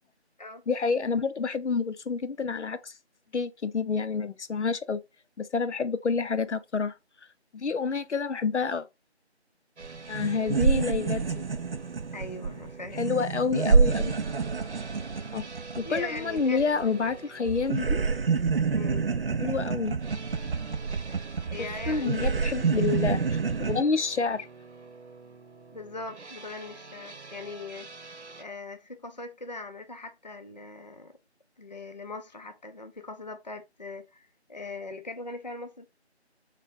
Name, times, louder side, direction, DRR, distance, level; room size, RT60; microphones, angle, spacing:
voice 1, 0.7-2.9 3.3-5.0 5.4-6.9 7.5-8.9 10.1-11.2 12.9-14.2 15.3-15.4 15.8-18.0 19.4-20.0 21.6-24.5, left 5 dB, 85° left, 0.7 m, -28 dB
sound 1, 9.8-9.9 10.1-17.2 17.5-23.8, right 5 dB, 60° right, 0.5 m, -28 dB
sound 2, 9.8-28.4, right 4 dB, 90° right, 1.0 m, -47 dB
voice 2, 12.1-13.1 15.8-16.8 18.7-19.1 21.5-22.4 25.7-27.9 28.4-31.1 31.6-35.9, left 3 dB, 40° left, 0.4 m, -40 dB
3.7 x 3.3 x 3.7 m
figure-of-eight pair, 170°, 34 cm